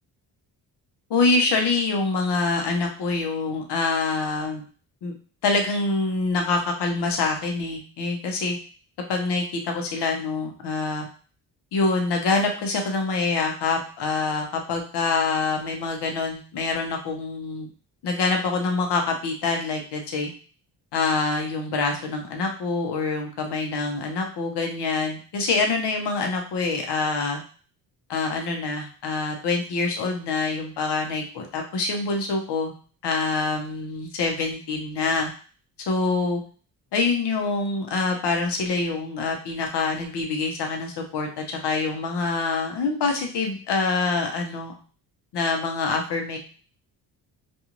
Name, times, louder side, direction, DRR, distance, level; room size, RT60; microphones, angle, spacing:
voice 1, 1.1-4.6 5.0-5.1 5.4-8.6 9.1-11.1 11.7-17.7 18.0-20.3 20.9-27.4 28.1-32.7 33.0-35.3 35.9-36.4 36.9-44.7 45.3-46.4, left 3 dB, 65° left, 2 dB, 0.9 m, -25 dB
2.6 x 2.4 x 3.0 m, 0.40 s
supercardioid pair, 55°, 44 cm